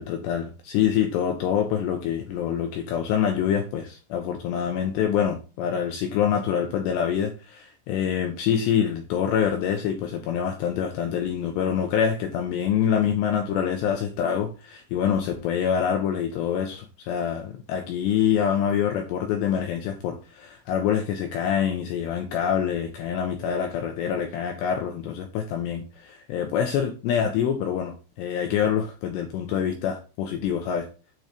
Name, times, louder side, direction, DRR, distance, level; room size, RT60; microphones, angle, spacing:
voice 1, 0.0-30.9, left 8 dB, 80° left, 2.5 m, -26 dB
9.2 x 3.1 x 5.0 m
omnidirectional pair, 5.8 m